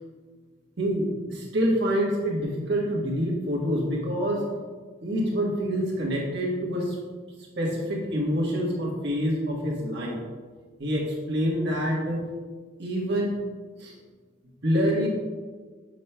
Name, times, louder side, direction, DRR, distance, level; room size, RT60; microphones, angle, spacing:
voice 1, 1.3-4.4 5.0-7.0 7.6-10.2 10.8-12.2 12.8-13.3 13.8-13.9 14.6-15.1, equal, 55° right, -4 dB, 1.3 m, -26 dB
6.9 x 6.3 x 2.2 m, 1.5 s
head